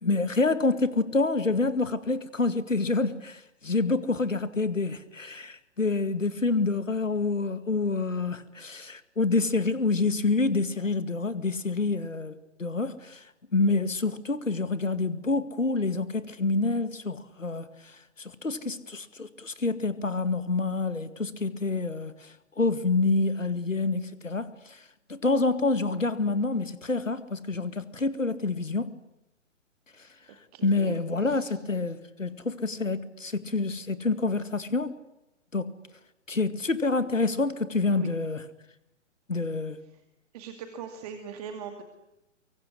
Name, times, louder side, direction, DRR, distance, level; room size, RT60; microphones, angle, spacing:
voice 1, 0.0-13.2 13.5-24.8 25.1-28.9 30.6-35.0 35.5-35.7 36.3-38.4 39.3-39.8, left 3 dB, 80° left, 2.1 m, -27 dB
voice 2, 30.3-31.0 31.2-31.6 37.9-38.1 39.8-40.0 40.3-41.8, right 7 dB, 30° right, 2.4 m, -41 dB
25.0 x 23.0 x 9.8 m
figure-of-eight pair, 130°, 38 cm